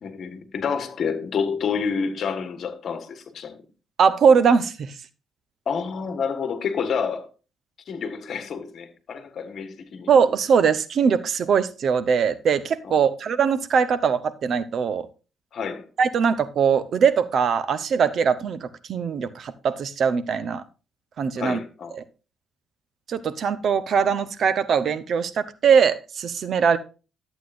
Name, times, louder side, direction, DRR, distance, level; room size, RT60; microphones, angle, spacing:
voice 1, 0.0-3.6 5.7-7.3 7.9-10.1 12.8-12.9 15.5-15.9 21.4-22.0, left 6 dB, 60° left, 1.4 m, -29 dB
voice 2, 4.0-4.9 10.1-15.1 16.0-20.6 21.2-21.6 21.9-22.0 23.1-26.8, right 6 dB, 60° right, 0.8 m, -21 dB
11.5 x 8.1 x 2.5 m
cardioid pair, 90°, 0 cm